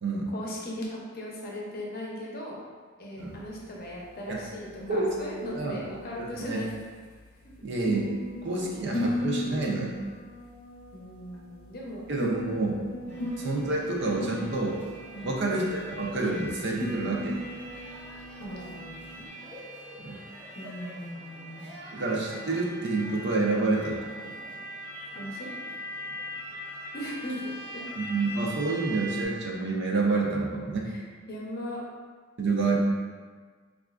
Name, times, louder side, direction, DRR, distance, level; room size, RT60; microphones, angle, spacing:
voice 1, 0.3-2.6 3.0-6.7 10.9-12.0 13.1-13.3 15.1-15.4 18.4-19.0 20.5-21.7 25.1-25.5 26.9-27.8 30.8-31.0 31.3-31.8 32.5-32.8, left 1 dB, 45° left, -3 dB, 0.7 m, -38 dB
sound 1, 3.2-19.3, left 1 dB, 90° left, 0.6 m, -38 dB
voice 2, 5.4-5.8 6.2-6.6 7.6-8.1 8.4-10.0 12.1-12.8 13.4-14.8 15.2-15.7 16.0-17.4 20.0-20.2 21.9-24.0 28.0-30.9 32.4-32.8, right 3 dB, 55° right, -2 dB, 0.5 m, -28 dB
sound 2, 13.1-29.3, equal, 5° left, 0.7 m, -42 dB
4.1 x 2.4 x 2.4 m, 1.5 s
head